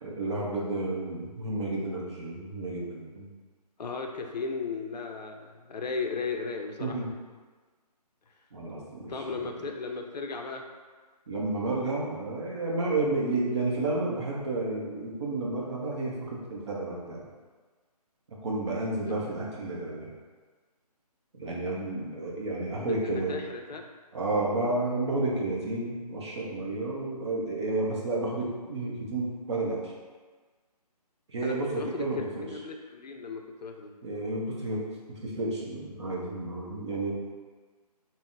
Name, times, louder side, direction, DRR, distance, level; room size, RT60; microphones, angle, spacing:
voice 1, 0.0-3.3 6.8-7.1 8.5-9.1 9.4-9.5 11.3-17.2 18.4-20.1 21.3-23.4 24.1-29.9 31.3-32.5 34.0-34.9 35.2-37.1, right 2 dB, 45° right, -4 dB, 0.7 m, -31 dB
voice 2, 3.8-7.0 9.1-10.6 19.1-19.2 22.8-23.9 31.4-32.1 32.4-33.9, left 4 dB, 90° left, 3 dB, 0.5 m, -35 dB
3.8 x 2.0 x 2.5 m, 1.4 s
hypercardioid pair, 160°, 21 cm